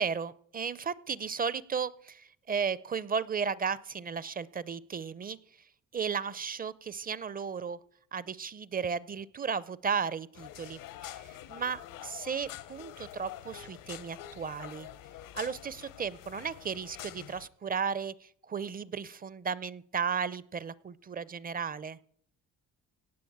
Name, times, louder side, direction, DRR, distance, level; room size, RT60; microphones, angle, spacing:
voice 1, 0.0-5.4 5.9-7.8 8.1-14.9 15.3-22.0, right 6 dB, 25° right, 20 dB, 0.6 m, -35 dB
sound 1, 10.3-17.5, left 13 dB, 85° left, 1.0 m, -46 dB
17.0 x 7.1 x 8.6 m, 0.63 s
cardioid pair, 110°, 32 cm